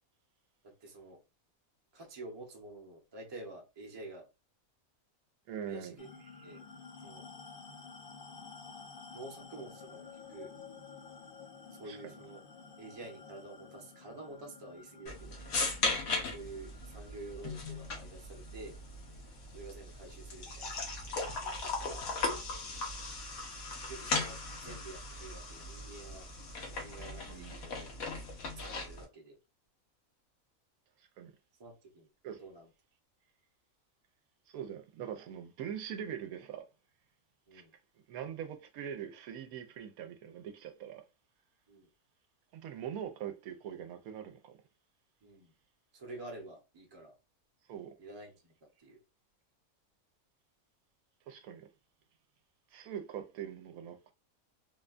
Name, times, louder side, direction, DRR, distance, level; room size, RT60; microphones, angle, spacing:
voice 1, 0.6-1.2 1.9-4.3 5.6-6.1 6.4-6.6 7.0-7.2 9.1-10.5 11.8-12.4 12.8-15.4 16.3-18.8 19.5-20.8 21.4-22.1 23.9-26.3 26.8-27.9 28.6-29.4 31.6-32.1 32.4-32.7 37.5-37.7 41.7-41.9 45.2-45.5 45.9-47.1 48.0-48.5 48.8-49.0, right 2 dB, 25° right, 0.6 m, -49 dB
voice 2, 5.5-6.0 11.8-12.0 15.7-16.0 27.3-27.6 31.2-31.3 32.2-32.4 34.5-36.7 37.5-37.6 38.1-41.0 42.5-44.6 47.7-47.9 51.3-51.7 52.7-54.1, right 9 dB, 85° right, 1.0 m, -42 dB
sound 1, 6.0-20.8, left 5 dB, 45° left, 0.8 m, -52 dB
sound 2, 15.1-29.1, left 3 dB, 80° left, 1.4 m, -38 dB
3.9 x 2.2 x 2.4 m
omnidirectional pair, 1.5 m